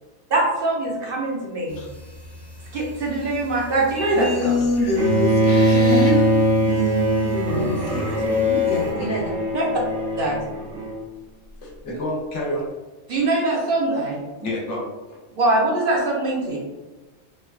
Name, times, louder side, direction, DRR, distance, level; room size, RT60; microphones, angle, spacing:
voice 1, 0.3-1.8 2.7-4.6 9.5-9.7 10.2-10.4 13.1-14.2 15.4-16.6, right 2 dB, 55° right, -3 dB, 0.8 m, -22 dB
sound 1, 1.7-8.9, left 1 dB, 45° left, 0.8 m, -36 dB
voice 2, 4.1-6.3 6.6-9.3, left 1 dB, 20° left, -3 dB, 0.4 m, -25 dB
Bowed string instrument, 5.0-11.0, right 1 dB, 85° right, 1.0 m, -21 dB
voice 3, 11.6-12.7 14.4-14.9, left 1 dB, 80° left, -2 dB, 1.1 m, -29 dB
3.2 x 2.3 x 2.3 m, 1.2 s
omnidirectional pair, 1.2 m